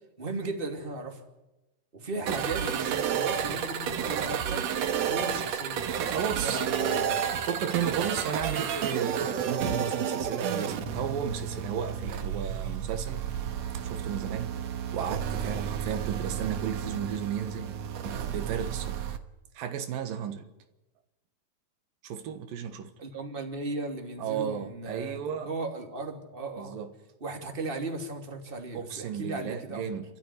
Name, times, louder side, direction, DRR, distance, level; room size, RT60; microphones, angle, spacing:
voice 1, 0.2-1.2 1.9-4.6 5.0-5.9 6.4-7.3 8.4-8.8 23.0-26.7 27.2-29.8, right 2 dB, 15° right, 2.5 m, -36 dB
sound 1, 2.3-19.2, right 8 dB, 60° right, 2.1 m, -31 dB
voice 2, 6.1-6.6 7.4-13.2 13.7-14.5 14.9-17.8 18.0-19.0 19.5-20.5 22.0-22.9 24.2-25.5 26.6-26.9 28.7-30.0, right 8 dB, 90° right, 3.2 m, -34 dB
29.0 x 14.0 x 9.7 m
omnidirectional pair, 3.9 m